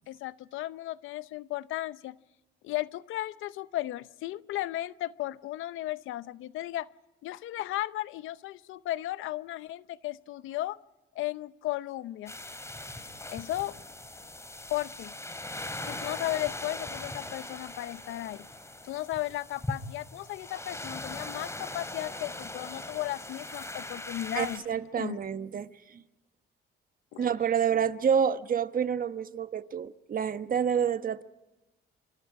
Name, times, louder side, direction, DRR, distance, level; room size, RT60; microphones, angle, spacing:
voice 1, 0.1-2.2 2.6-6.9 7.2-10.8 11.1-12.3 13.3-13.7 14.7-15.2 15.8-18.5 18.8-25.2 27.1-27.3, left 15 dB, 85° left, 0.7 m, -35 dB
sound 1, 12.3-24.6, left 1 dB, 15° left, 3.6 m, -40 dB
voice 2, 24.3-26.0 27.2-31.2, right 7 dB, 45° right, 1.2 m, -28 dB
28.0 x 25.5 x 4.8 m
cardioid pair, 90°, 20 cm